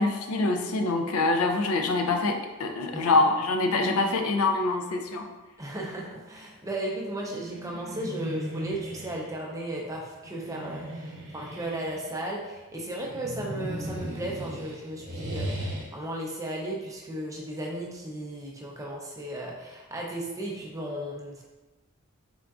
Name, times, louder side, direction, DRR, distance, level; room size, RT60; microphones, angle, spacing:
voice 1, 0.0-5.3, left 3 dB, 80° left, 4 dB, 0.4 m, -25 dB
voice 2, 2.9-3.2 5.6-21.4, right 1 dB, 15° right, -2 dB, 0.5 m, -35 dB
sound 1, 7.0-9.3 10.2-12.2 13.0-15.9, right 1 dB, 55° right, 0.7 m, -37 dB
3.7 x 3.5 x 2.3 m, 1.1 s
head